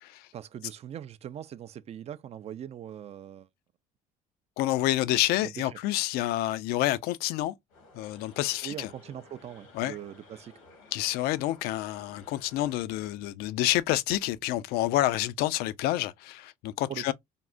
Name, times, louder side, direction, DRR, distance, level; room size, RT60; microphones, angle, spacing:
voice 1, 0.3-3.5 4.9-5.8 8.6-10.5 16.9-17.1, right 10 dB, 40° right, 0.4 m, -41 dB
voice 2, 4.6-7.5 7.9-8.9 9.8-9.9 10.9-17.1, left 15 dB, 70° left, 0.4 m, -28 dB
sound 1, 7.7-12.8, left 3 dB, 90° left, 1.3 m, -55 dB
3.5 x 2.0 x 2.4 m
hypercardioid pair, 70°, 17 cm